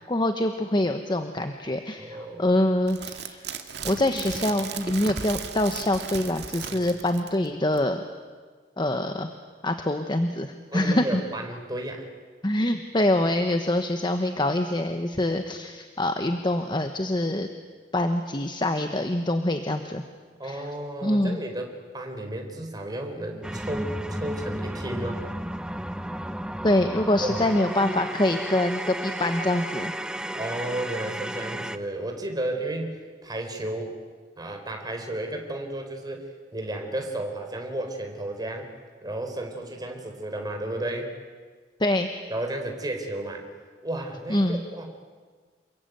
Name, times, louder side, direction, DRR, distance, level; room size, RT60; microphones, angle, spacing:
voice 1, 0.0-3.4 3.8-8.0 8.8-9.3 9.6-11.2 12.4-17.5 17.9-20.0 20.4-20.7 21.0-21.4 26.6-29.9 41.8-42.1 44.3-44.6, left 1 dB, 25° left, 6 dB, 1.3 m, -25 dB
voice 2, 2.0-2.6 6.7-6.9 10.7-12.1 20.4-25.3 27.2-27.4 30.3-33.9 34.4-38.7 39.0-41.1 42.3-43.4 43.8-44.9, right 1 dB, 25° right, 3 dB, 4.3 m, -33 dB
sound 1, 2.9-7.5 7.8-7.9, right 6 dB, 70° right, 2.2 m, -36 dB
sound 2, 23.4-31.8, right 1 dB, 5° right, 0.8 m, -33 dB
28.5 x 22.5 x 9.3 m, 1.5 s
head